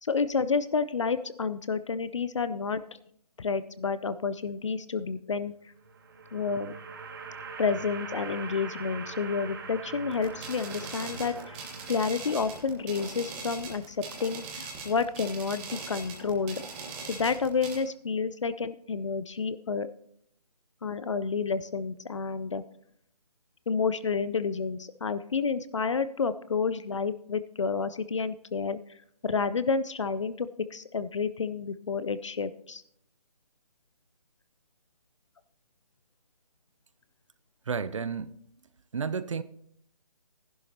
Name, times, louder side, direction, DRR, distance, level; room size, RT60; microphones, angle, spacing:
voice 1, 0.0-2.8 3.4-5.5 6.3-6.7 7.6-11.6 11.9-16.6 17.1-19.9 20.8-22.6 23.7-28.8 29.2-32.8, left 5 dB, 50° left, 0.5 m, -30 dB
sound 1, 5.7-12.9, right 5 dB, 35° right, 0.9 m, -42 dB
sound 2, 10.1-17.8, right 4 dB, 15° right, 1.3 m, -41 dB
voice 2, 37.7-38.3 38.9-39.4, right 6 dB, 50° right, 0.5 m, -31 dB
15.0 x 11.0 x 2.8 m
figure-of-eight pair, 160°, 20 cm